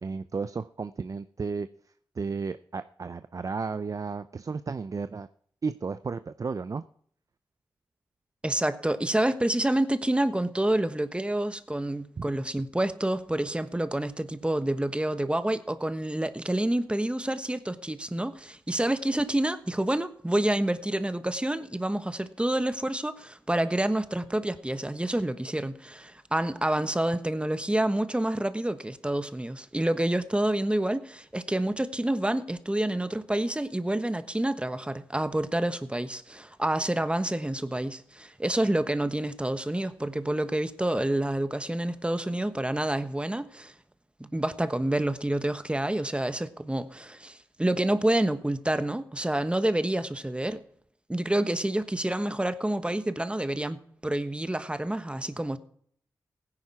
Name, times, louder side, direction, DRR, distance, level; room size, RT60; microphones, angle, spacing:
voice 1, 0.0-1.7 2.2-5.3 5.6-6.8 12.2-12.3, right 4 dB, 45° right, 0.5 m, -33 dB
voice 2, 8.4-43.7 44.2-50.6 51.1-55.6, right 1 dB, 15° right, 1.2 m, -28 dB
16.5 x 9.9 x 4.8 m
cardioid pair, 50°, 8 cm